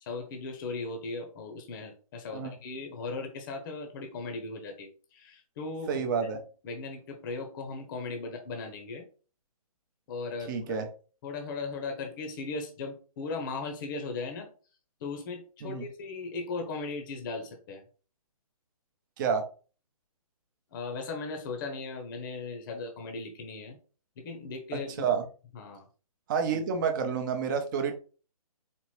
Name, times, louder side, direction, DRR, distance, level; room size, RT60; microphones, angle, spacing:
voice 1, 0.0-6.0 6.6-9.1 10.1-10.8 11.2-14.5 15.0-17.8 20.7-23.8 24.2-25.1 25.5-25.8, left 3 dB, 35° left, 5 dB, 0.8 m, -37 dB
voice 2, 5.9-6.4 10.5-10.9 15.6-15.9 19.2-19.4 24.7-25.2 26.3-27.9, right 6 dB, 30° right, 6 dB, 0.7 m, -29 dB
4.3 x 2.8 x 3.2 m, 0.37 s
hypercardioid pair, 145°, 19 cm